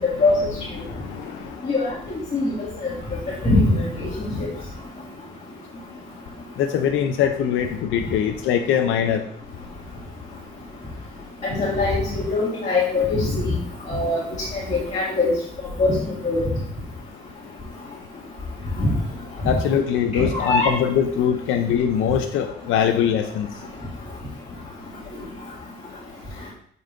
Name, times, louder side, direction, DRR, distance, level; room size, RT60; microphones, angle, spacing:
voice 1, 0.8-1.6 6.6-9.2 19.4-23.5, left 8 dB, 85° left, 6 dB, 0.5 m, -22 dB
voice 2, 3.4-4.1 11.4-13.5 13.9-14.2 14.5-15.3 15.8-15.9 16.2-16.5 18.8-18.9 20.1-20.7, left 3 dB, 35° left, -7 dB, 2.0 m, -21 dB
7.5 x 5.3 x 2.5 m, 0.62 s
cardioid pair, 90°, 20 cm